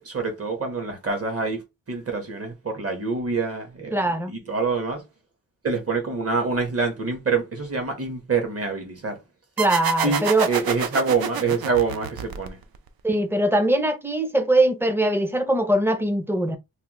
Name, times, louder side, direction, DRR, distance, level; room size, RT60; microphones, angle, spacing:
voice 1, 0.0-1.6 1.9-4.0 4.3-5.0 5.6-9.2 10.0-12.6, right 4 dB, 40° right, 1.1 m, -26 dB
voice 2, 3.9-4.3 9.6-10.5 13.0-16.6, right 1 dB, 5° right, 0.4 m, -21 dB
sound 1, 9.6-12.9, right 7 dB, 80° right, 0.5 m, -28 dB
3.3 x 2.1 x 2.9 m
wide cardioid pair, 135°, 36 cm